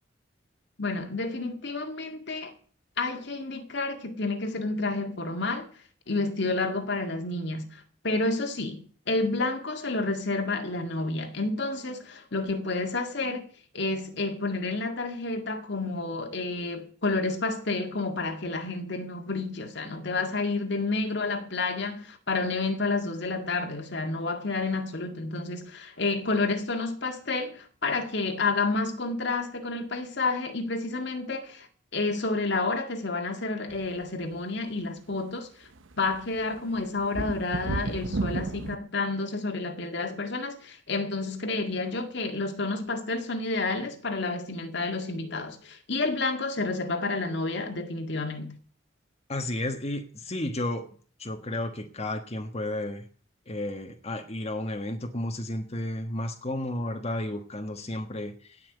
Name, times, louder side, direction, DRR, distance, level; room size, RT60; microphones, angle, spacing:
voice 1, 0.8-2.5 3.0-5.7 6.1-13.5 13.7-31.7 31.9-35.7 36.0-48.6, left 3 dB, 60° left, 2.0 m, -30 dB
sound 1, 33.7-33.8 35.8-35.9 36.1-38.8, right 2 dB, 80° right, 0.8 m, -32 dB
voice 2, 49.3-50.9 51.2-53.0 53.5-58.7, left 1 dB, 35° left, 1.4 m, -32 dB
17.5 x 5.9 x 8.2 m
head